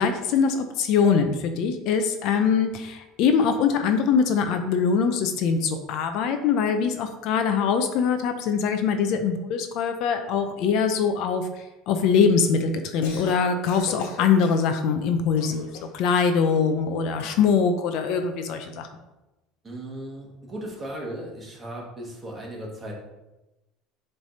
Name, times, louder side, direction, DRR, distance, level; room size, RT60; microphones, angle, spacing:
voice 1, 0.0-11.5 11.9-18.9, left 6 dB, 60° left, 7 dB, 0.6 m, -23 dB
Cough, 13.0-13.4 13.7-14.6 15.4-16.0 17.2-17.5, left 4 dB, 80° left, 1.4 m, -39 dB
voice 2, 19.6-22.9, right 1 dB, 15° right, -3 dB, 1.8 m, -36 dB
7.3 x 3.4 x 4.2 m, 1.0 s
cardioid pair, 130°, 0 cm